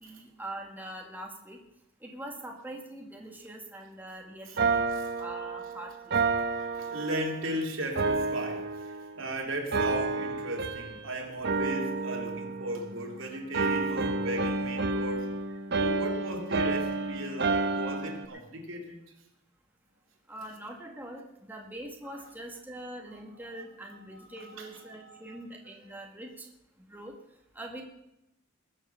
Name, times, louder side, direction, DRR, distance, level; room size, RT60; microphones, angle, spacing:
voice 1, 0.0-1.6 2.0-4.8 5.2-6.1 20.3-26.5 26.9-27.1 27.5-27.8, right 1 dB, 10° right, 0 dB, 1.9 m, -43 dB
sound 1, 4.6-7.5 8.0-9.3 9.7-11.1 11.4-13.2 13.5-18.3, right 3 dB, 55° right, 1.0 m, -30 dB
voice 2, 6.4-15.3 15.7-19.0 23.1-23.2 24.1-25.9, right 1 dB, 70° right, 1 dB, 3.1 m, -37 dB
20.5 x 7.2 x 7.0 m, 0.88 s
head